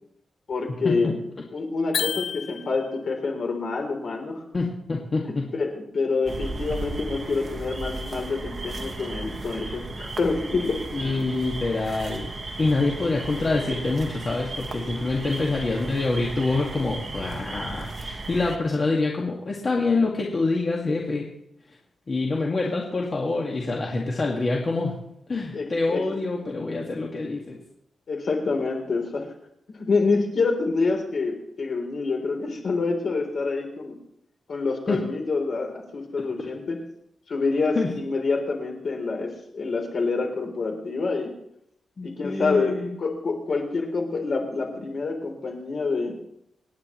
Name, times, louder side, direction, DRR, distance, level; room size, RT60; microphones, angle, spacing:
voice 1, 0.5-1.1 1.5-4.4 5.2-5.3 5.6-10.8 15.1-15.5 25.5-26.0 28.1-29.3 29.7-34.0 34.5-36.8 37.3-41.3 42.0-46.1, left 4 dB, 55° left, 2 dB, 3.4 m, -27 dB
sound 1, 1.9-3.1, left 8 dB, 80° left, 0.5 m, -30 dB
voice 2, 4.5-5.5 10.9-12.3 12.6-21.3 22.1-24.9 25.3-27.6 34.9-35.0 37.8-37.9 42.0-42.9, left 3 dB, 40° left, -2 dB, 1.9 m, -26 dB
sound 2, 6.2-18.6, right 2 dB, 35° right, 1.6 m, -35 dB
27.0 x 9.7 x 3.1 m, 0.77 s
wide cardioid pair, 120°, 0 cm